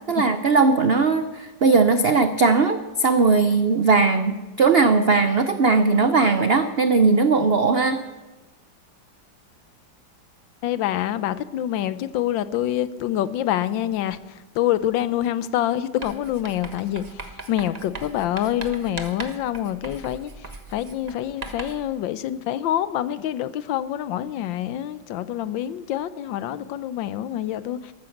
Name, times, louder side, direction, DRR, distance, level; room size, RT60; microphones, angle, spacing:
voice 1, 0.1-8.0, right 4 dB, 75° right, 9 dB, 0.5 m, -19 dB
voice 2, 10.6-27.9, left 12 dB, 80° left, 15 dB, 1.4 m, -26 dB
Writing, 16.0-21.9, right 3 dB, 25° right, 1.1 m, -39 dB
13.5 x 13.0 x 7.2 m, 1.2 s
omnidirectional pair, 2.0 m